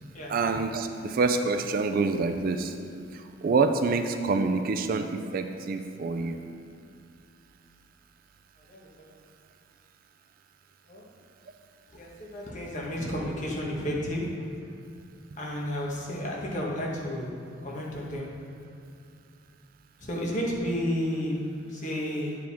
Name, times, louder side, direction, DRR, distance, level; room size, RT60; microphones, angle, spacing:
voice 1, 0.3-2.7 3.1-6.4, right 4 dB, 50° right, 7 dB, 0.3 m, -27 dB
voice 2, 8.7-9.1 10.9-11.0 11.9-14.3 15.4-17.3 17.6-18.3 20.0-21.4 21.7-22.4, equal, 40° left, -3 dB, 1.2 m, -32 dB
8.9 x 4.9 x 3.5 m, 2.4 s
head